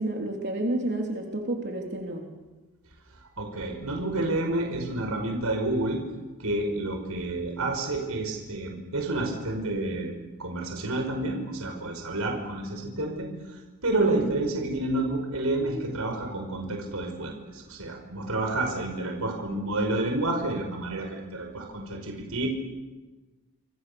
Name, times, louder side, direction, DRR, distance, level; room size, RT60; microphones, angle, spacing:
voice 1, 0.0-2.3 14.1-14.3, right 1 dB, 50° right, 1 dB, 3.5 m, -30 dB
voice 2, 3.4-6.0 6.4-10.1 10.4-22.5, right 2 dB, 80° right, 3 dB, 5.8 m, -29 dB
28.5 x 28.0 x 7.1 m, 1.3 s
head